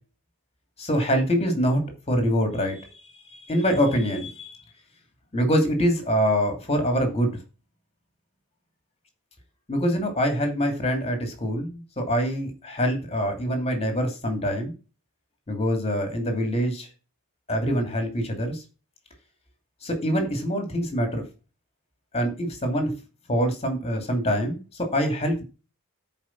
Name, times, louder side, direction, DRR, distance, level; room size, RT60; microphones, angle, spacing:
voice 1, 0.8-2.9 3.3-4.6 5.3-7.4 9.7-14.7 15.5-16.9 17.5-18.6 19.8-21.2 22.1-22.9 23.3-25.4, equal, 30° left, 4 dB, 2.8 m, -25 dB
13.0 x 5.0 x 6.0 m, 0.32 s
head